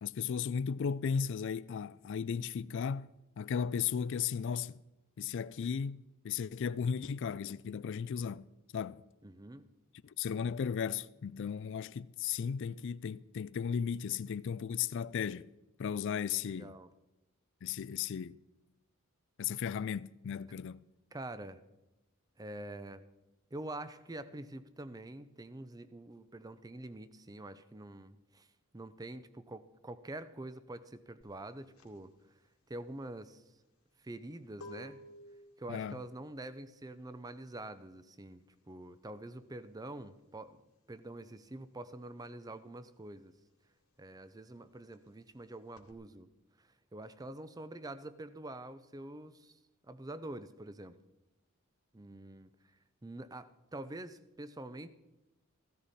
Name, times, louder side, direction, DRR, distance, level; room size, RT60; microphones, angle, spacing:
voice 1, 0.0-4.8 5.2-8.5 8.7-9.0 10.0-15.5 15.8-16.8 17.6-18.4 19.4-20.8 35.7-36.0, left 7 dB, 55° left, 0.3 m, -35 dB
voice 2, 9.2-9.7 16.6-16.9 21.1-21.6 22.4-23.0 23.5-28.5 28.7-32.1 32.7-33.4 34.0-35.0 35.6-40.6 40.9-43.3 44.0-46.3 46.6-51.0 51.9-52.5 53.0-54.9, right 1 dB, 15° right, 0.5 m, -46 dB
sound 1, 31.2-41.4 41.7-45.9, left 1 dB, 75° left, 1.9 m, -56 dB
15.5 x 13.5 x 4.2 m
head